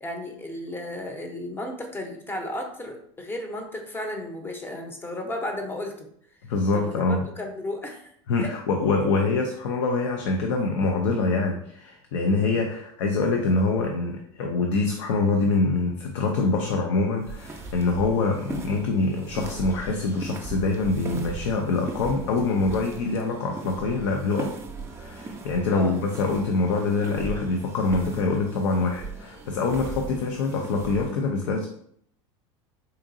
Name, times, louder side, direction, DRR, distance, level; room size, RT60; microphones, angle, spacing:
voice 1, 0.0-6.1 6.7-8.1 8.4-8.5 12.3-12.6 25.7-26.0 30.1-30.2, left 1 dB, 15° left, 4 dB, 0.7 m, -34 dB
voice 2, 6.5-7.3 8.3-24.6 24.9-31.7, left 3 dB, 80° left, 3 dB, 0.5 m, -25 dB
sound 1, 17.2-31.1, right 3 dB, 20° right, 0.5 m, -38 dB
3.9 x 2.6 x 2.6 m, 0.67 s
hypercardioid pair, 95°, 15 cm